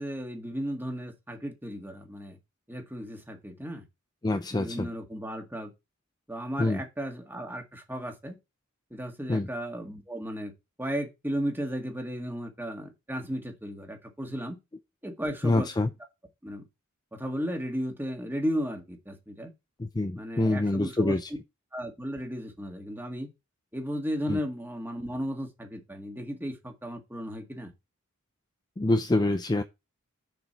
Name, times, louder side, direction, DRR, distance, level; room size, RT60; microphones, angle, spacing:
voice 1, 0.0-2.4 2.7-3.9 4.5-5.7 6.3-8.4 8.9-10.5 10.8-14.6 15.0-15.7 16.4-16.6 17.1-19.5 20.2-21.2 21.7-23.3 23.7-27.7, equal, 10° right, 1.8 m, -35 dB
voice 2, 4.2-4.9 6.6-6.8 9.3-9.5 15.4-15.9 19.8-21.3 24.3-24.4 28.8-29.6, left 2 dB, 20° left, 0.5 m, -26 dB
7.0 x 6.1 x 4.6 m
head